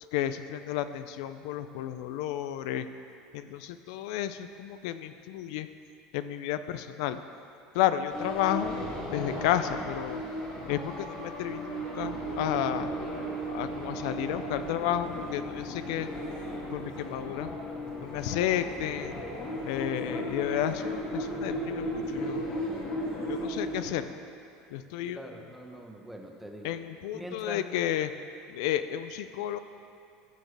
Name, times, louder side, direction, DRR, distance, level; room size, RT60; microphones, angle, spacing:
voice 1, 0.1-2.9 3.3-5.7 6.1-7.2 7.7-10.2 10.7-12.9 13.4-16.1 16.7-17.6 18.0-19.2 19.6-22.5 23.3-24.1 24.7-25.2 26.6-28.1 28.5-29.6, left 11 dB, 75° left, 11 dB, 0.3 m, -32 dB
sound 1, 8.1-24.0, equal, 40° left, 2.2 m, -35 dB
voice 2, 25.1-26.8 27.1-27.6, equal, 5° right, 1 dB, 0.8 m, -43 dB
15.0 x 6.4 x 3.3 m, 2.6 s
cardioid pair, 155°, 3 cm